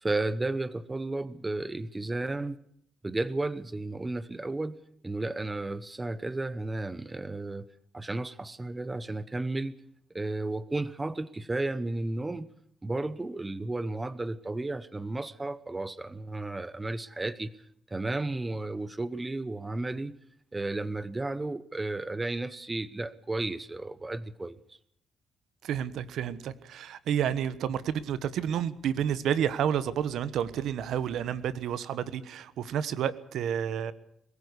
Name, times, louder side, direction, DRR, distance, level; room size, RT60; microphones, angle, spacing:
voice 1, 0.0-2.6 3.0-7.7 7.9-9.8 10.1-12.5 12.8-17.5 17.9-20.1 20.5-24.8, right 2 dB, 20° right, 17 dB, 1.0 m, -33 dB
voice 2, 25.6-33.9, right 9 dB, 75° right, 15 dB, 1.2 m, -30 dB
22.5 x 15.0 x 8.3 m, 0.69 s
cardioid pair, 90°, 0 cm